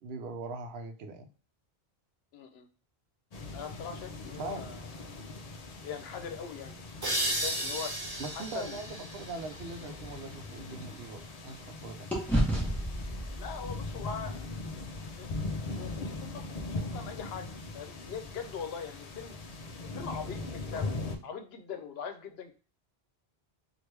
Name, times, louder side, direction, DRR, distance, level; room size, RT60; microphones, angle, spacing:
voice 1, 0.0-1.3 4.4-4.7 8.2-12.1, right 3 dB, 75° right, 6 dB, 0.8 m, -41 dB
voice 2, 2.3-2.7 3.5-4.9 5.8-6.8 7.1-7.9 8.3-8.8 12.2-12.4 13.4-14.5 15.1-15.3 15.7-17.5 17.7-19.3 19.8-20.9 21.2-22.5, left 6 dB, 75° left, 7 dB, 0.9 m, -41 dB
sound 1, 3.3-21.2, left 3 dB, 50° left, 0.5 m, -41 dB
sound 2, 7.0-10.4, right 1 dB, 45° right, 1.3 m, -35 dB
sound 3, 9.4-11.7 12.1-16.3, right 1 dB, ahead, 0.9 m, -35 dB
3.0 x 2.5 x 3.2 m, 0.37 s
omnidirectional pair, 1.1 m